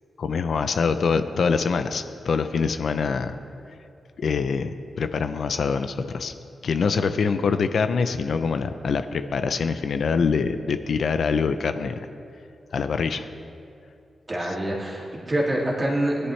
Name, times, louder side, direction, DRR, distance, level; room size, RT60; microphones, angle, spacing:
voice 1, 0.2-3.4 4.2-6.3 6.6-12.0 12.7-13.3 14.5-14.6, left 5 dB, 60° left, 9 dB, 0.5 m, -24 dB
voice 2, 14.3-16.3, right 1 dB, 25° right, -4 dB, 2.4 m, -26 dB
20.0 x 11.0 x 3.2 m, 2.5 s
wide cardioid pair, 160°, 0 cm